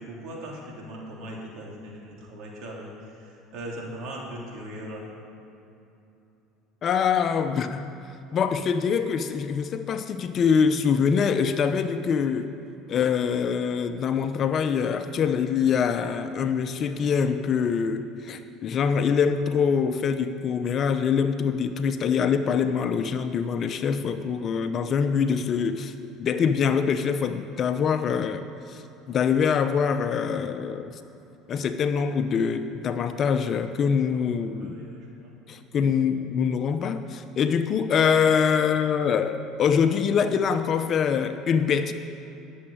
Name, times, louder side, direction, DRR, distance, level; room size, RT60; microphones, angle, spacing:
voice 1, 0.0-2.9 3.2-5.1 34.6-35.3, right 1 dB, 60° right, -2 dB, 3.6 m, -39 dB
voice 2, 6.8-7.9 8.3-12.5 12.9-25.9 26.2-28.4 28.7-30.9 31.5-34.8 35.5-41.9, left 6 dB, 45° left, 9 dB, 0.8 m, -24 dB
11.5 x 7.4 x 8.8 m, 2.9 s
supercardioid pair, 95°, 0 cm